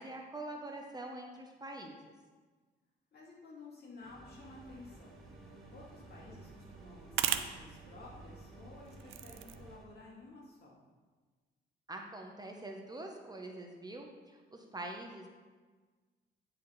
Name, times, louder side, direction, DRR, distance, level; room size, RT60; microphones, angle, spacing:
voice 1, 0.0-2.0 11.9-15.3, right 2 dB, 20° right, 1 dB, 0.8 m, -44 dB
voice 2, 3.1-5.1 5.7-10.8, left 2 dB, 55° left, -4 dB, 2.3 m, -53 dB
sound 1, 4.0-9.8, equal, ahead, 1.4 m, -55 dB
sound 2, 4.3-9.8, right 11 dB, 85° right, 0.5 m, -41 dB
10.0 x 4.9 x 3.1 m, 1.4 s
cardioid pair, 90°, 20 cm